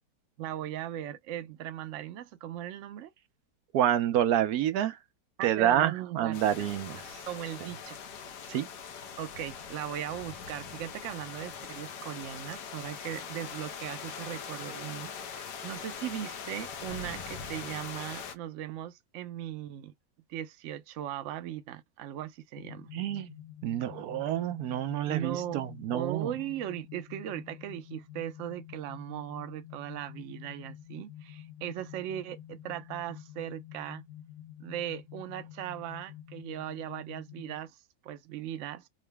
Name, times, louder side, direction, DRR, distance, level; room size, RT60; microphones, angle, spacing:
voice 1, 0.4-3.1 5.4-6.7 7.3-8.0 9.2-19.9 20.3-22.9 25.1-25.6 25.9-34.0 34.6-37.8 38.0-38.9, right 11 dB, 90° right, 0.6 m, -38 dB
voice 2, 3.7-5.0 5.4-7.0 8.5-8.7 22.9-23.3 23.6-26.3, right 11 dB, 70° right, 1.0 m, -28 dB
sound 1, 6.3-18.3, left 6 dB, 75° left, 1.3 m, -42 dB
sound 2, 22.6-37.6, left 11 dB, 50° left, 1.0 m, -48 dB
3.8 x 2.1 x 3.3 m
omnidirectional pair, 1.9 m